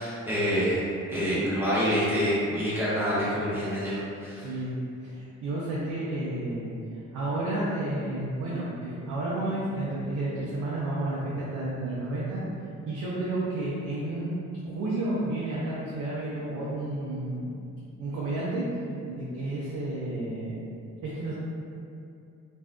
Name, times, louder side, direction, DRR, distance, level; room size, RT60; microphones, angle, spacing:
voice 1, 0.0-4.5, equal, 10° right, -11 dB, 0.9 m, -27 dB
voice 2, 4.4-4.7 5.0-6.7 7.1-12.4 12.9-14.3 14.6-17.6 18.0-18.7 19.1-20.7 21.0-21.3, right 2 dB, 80° right, -7 dB, 0.5 m, -31 dB
2.6 x 2.2 x 2.2 m, 2.5 s
cardioid pair, 90°, 30 cm